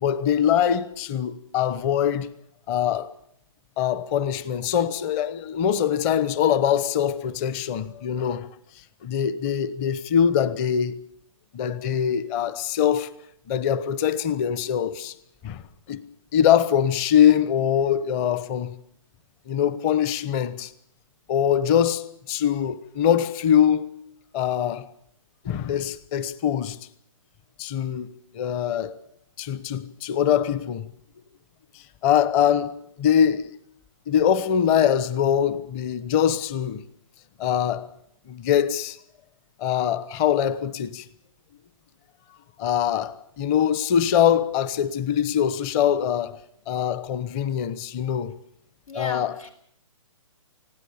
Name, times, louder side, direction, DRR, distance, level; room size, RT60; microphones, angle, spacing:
voice 1, 0.0-2.3 2.7-3.1 3.8-8.5 9.0-11.0 11.5-13.1 13.5-15.1 15.4-15.6 15.9-16.0 16.3-18.7 19.5-20.7 21.3-23.9 24.3-24.9 25.4-26.8 27.6-28.1 28.3-28.9 29.4-30.9 32.0-33.5 34.1-36.8 37.4-37.9 38.3-39.0 39.6-41.0 42.6-46.4 46.7-48.3 48.9-49.3, left 9 dB, 25° left, 1.0 m, -23 dB
voice 2, 48.9-49.5, left 2 dB, 90° left, 4.0 m, -35 dB
19.5 x 16.5 x 8.7 m
hypercardioid pair, 145°, 17 cm